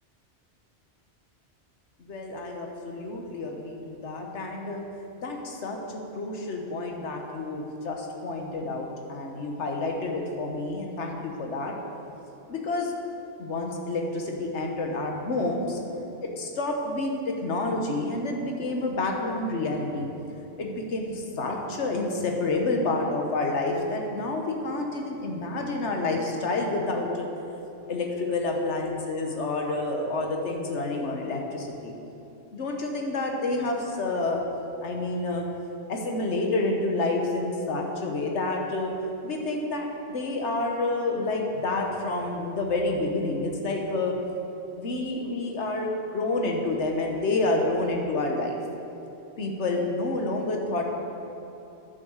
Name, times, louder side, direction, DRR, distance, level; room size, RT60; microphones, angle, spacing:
voice 1, 2.0-4.8 5.2-11.7 12.5-12.9 13.4-15.8 16.2-20.1 20.6-27.3 27.9-31.9 32.5-34.4 34.8-35.5 35.9-38.9 39.2-44.2 44.8-48.6 49.4-50.8, left 2 dB, 80° left, 2 dB, 1.4 m, -29 dB
9.9 x 6.5 x 6.5 m, 3.0 s
omnidirectional pair, 1.2 m